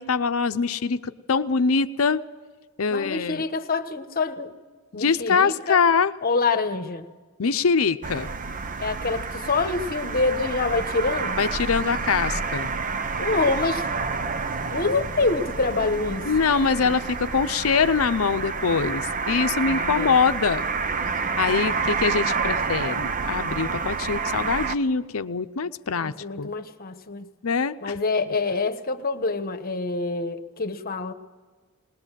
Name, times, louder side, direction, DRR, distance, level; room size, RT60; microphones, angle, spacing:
voice 1, 0.0-2.2 2.8-3.4 4.9-6.1 7.4-8.3 11.4-12.7 16.3-20.6 21.4-26.5 27.4-27.9, left 5 dB, 75° left, 11 dB, 0.7 m, -23 dB
voice 2, 2.9-4.5 4.9-5.9 6.2-7.1 8.8-11.4 13.2-13.9 14.7-16.3 19.7-20.2 21.5-22.4 25.9-27.3 27.8-31.1, left 3 dB, 45° left, 9 dB, 1.2 m, -26 dB
sound 1, 8.0-24.7, right 4 dB, 40° right, 0.7 m, -29 dB
20.5 x 19.5 x 7.5 m, 1.4 s
head